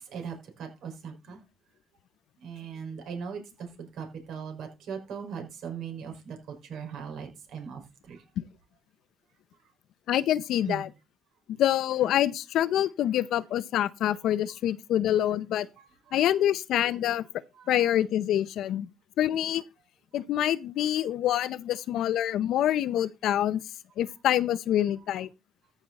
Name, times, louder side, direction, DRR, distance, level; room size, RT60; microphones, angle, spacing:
voice 1, 0.0-1.4 2.4-8.2 10.7-10.8 15.7-16.2 17.5-17.9, right 6 dB, 80° right, 5.0 m, -39 dB
voice 2, 10.1-10.9 11.6-15.7 16.1-17.2 17.7-18.9 19.2-19.6 20.1-23.6 24.0-25.3, left 11 dB, 80° left, 0.6 m, -26 dB
14.5 x 6.2 x 4.1 m
cardioid pair, 90°, 0 cm